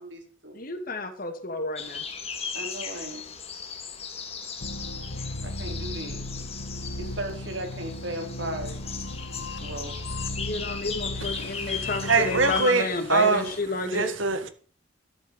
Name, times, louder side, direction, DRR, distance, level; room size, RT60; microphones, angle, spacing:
voice 1, 0.0-0.6 2.5-3.3 5.4-6.2 7.0-8.8 9.6-10.0, right 1 dB, 70° right, 4.3 m, -36 dB
voice 2, 0.5-2.0 10.4-14.1, left 2 dB, 45° left, 2.4 m, -31 dB
sound 1, 1.7-13.6, left 6 dB, 30° left, 2.5 m, -37 dB
sound 2, 4.6-12.6, left 1 dB, 85° left, 1.8 m, -36 dB
voice 3, 12.0-13.5 13.9-14.5, right 4 dB, 85° right, 1.8 m, -23 dB
13.0 x 11.5 x 5.6 m
head